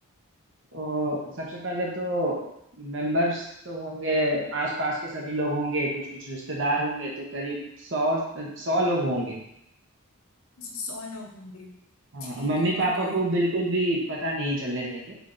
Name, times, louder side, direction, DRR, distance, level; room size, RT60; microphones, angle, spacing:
voice 1, 0.7-2.4 2.8-9.4 12.1-15.3, right 1 dB, 55° right, -2 dB, 1.1 m, -27 dB
voice 2, 10.6-11.8 12.2-13.2, left 3 dB, 65° left, 0 dB, 0.9 m, -39 dB
3.6 x 3.5 x 3.9 m, 0.77 s
head